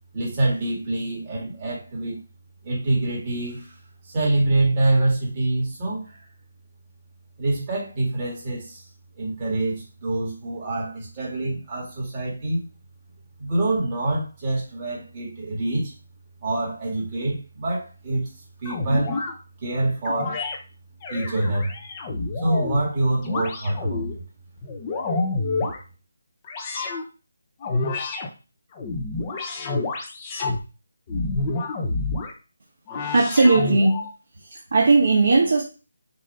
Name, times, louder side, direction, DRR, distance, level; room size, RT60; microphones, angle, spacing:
voice 1, 0.1-2.2 2.6-3.8 4.1-6.2 7.4-8.8 9.2-12.6 13.4-15.9 16.4-18.3 18.6-19.2 19.6-20.4 21.1-21.7 22.4-24.0, right 2 dB, 15° right, -5 dB, 1.9 m, -25 dB
sound 1, 18.6-19.3 20.0-20.6 21.0-22.8 23.2-24.1 24.6-25.8 26.4-27.0 27.6-28.3 28.7-30.6 31.1-32.3 32.9-34.1, left 3 dB, 15° left, 0.7 m, -28 dB
voice 2, 33.0-34.0 34.5-35.6, right 3 dB, 50° right, -3 dB, 1.2 m, -18 dB
6.3 x 2.7 x 5.4 m, 0.32 s
hypercardioid pair, 175°, 0 cm